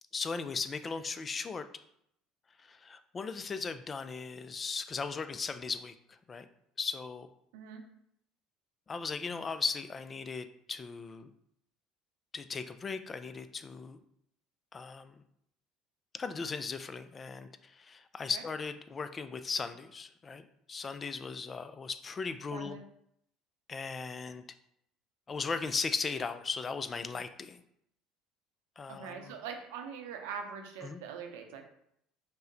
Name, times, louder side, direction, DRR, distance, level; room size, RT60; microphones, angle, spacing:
voice 1, 0.1-1.6 2.6-5.9 6.3-6.5 6.8-7.3 8.9-11.3 12.3-14.0 14.7-15.2 16.1-22.8 23.7-24.4 25.3-27.6 28.8-29.3 30.8-31.0, left 5 dB, 30° left, 10 dB, 0.3 m, -37 dB
voice 2, 22.5-22.8 28.9-31.6, right 6 dB, 85° right, 4 dB, 0.7 m, -42 dB
5.4 x 2.1 x 3.9 m, 0.74 s
supercardioid pair, 95°, 0 cm